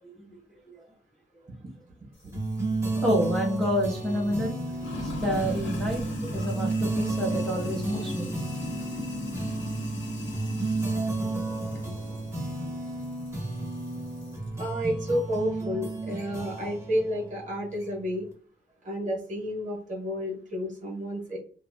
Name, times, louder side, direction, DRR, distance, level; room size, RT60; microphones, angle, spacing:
Sink (filling or washing), 2.2-14.5, left 1 dB, 85° left, 0.8 m, -39 dB
sound 1, 2.3-18.2, right 2 dB, 15° right, 0.7 m, -32 dB
voice 1, 3.0-4.6 5.0-6.0 6.3-8.3, equal, 5° left, -3 dB, 0.4 m, -28 dB
voice 2, 14.6-18.3 18.8-21.4, equal, 40° right, -1 dB, 0.9 m, -31 dB
2.5 x 2.0 x 2.5 m, 0.44 s
wide cardioid pair, 175°, 19 cm